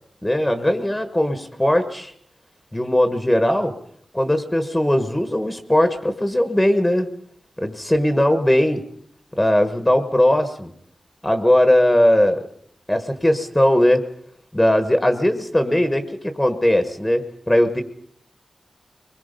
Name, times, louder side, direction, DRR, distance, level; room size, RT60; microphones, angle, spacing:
voice 1, 0.2-2.1 2.7-3.7 4.1-7.1 7.6-8.8 9.4-10.7 11.2-12.5 12.9-14.1 14.5-17.8, left 1 dB, 10° left, 8 dB, 1.3 m, -19 dB
24.0 x 22.0 x 5.3 m, 0.66 s
wide cardioid pair, 135°, 0 cm